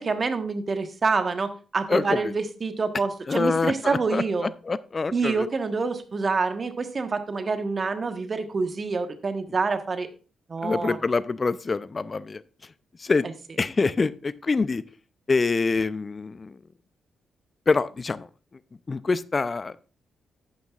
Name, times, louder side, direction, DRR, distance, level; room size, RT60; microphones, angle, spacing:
voice 1, 0.0-4.5 5.1-10.1 10.5-11.0 13.2-13.3, right 4 dB, 45° right, 8 dB, 1.3 m, -27 dB
voice 2, 3.3-4.2 4.7-5.5 10.6-12.4 13.0-13.3 13.6-14.8 15.3-16.5 17.7-18.3 18.9-19.7, left 4 dB, 40° left, 17 dB, 0.5 m, -25 dB
11.5 x 9.2 x 2.4 m, 0.35 s
hypercardioid pair, 40°, 0 cm